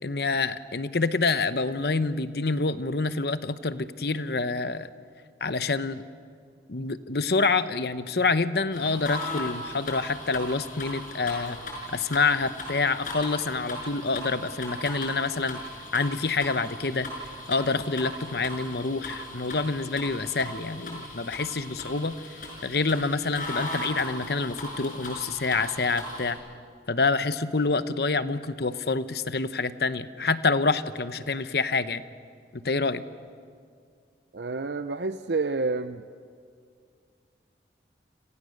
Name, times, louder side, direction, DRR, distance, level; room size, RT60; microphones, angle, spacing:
voice 1, 0.0-4.9 5.4-6.0 6.7-11.6 11.9-15.6 15.9-17.1 17.5-22.2 22.6-26.4 26.9-32.0 32.5-33.0, left 3 dB, 65° left, 12 dB, 0.9 m, -27 dB
sound 1, 8.7-26.3, left 1 dB, 50° left, 5.6 m, -38 dB
voice 2, 34.3-36.0, right 3 dB, 75° right, 10 dB, 0.7 m, -29 dB
29.5 x 27.0 x 6.6 m, 2.2 s
head